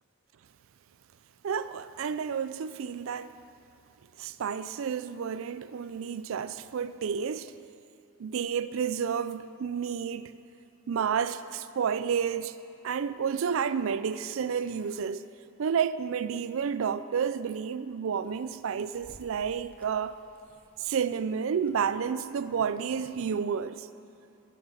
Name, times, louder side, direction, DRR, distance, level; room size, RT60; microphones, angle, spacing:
voice 1, 1.4-3.3 4.2-7.5 8.2-10.3 10.9-12.6 12.8-15.2 15.6-20.1 20.8-23.9, right 7 dB, 65° right, 0.4 m, -30 dB
sound 1, 18.2-23.4, equal, 5° left, 1.0 m, -60 dB
17.0 x 5.8 x 5.8 m
head